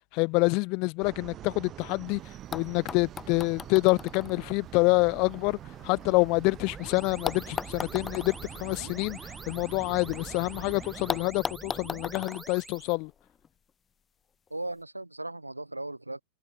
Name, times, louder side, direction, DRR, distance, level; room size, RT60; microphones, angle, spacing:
voice 1, 0.1-2.2 2.5-5.6 5.8-13.1, left 29 dB, 45° left, 0.6 m, -27 dB
sound 1, 1.0-11.2, right 12 dB, 30° right, 1.0 m, -45 dB
sound 2, 2.1-2.2 2.5-6.6 7.2-10.2 10.5-10.6 11.1-13.5 14.5-14.6, left 6 dB, 20° left, 1.8 m, -39 dB
sound 3, 6.2-13.0, right 3 dB, 10° right, 2.4 m, -45 dB
voice 2, 14.5-16.2, right 2 dB, 85° right, 1.7 m, -37 dB
figure-of-eight pair, 90°, 0 cm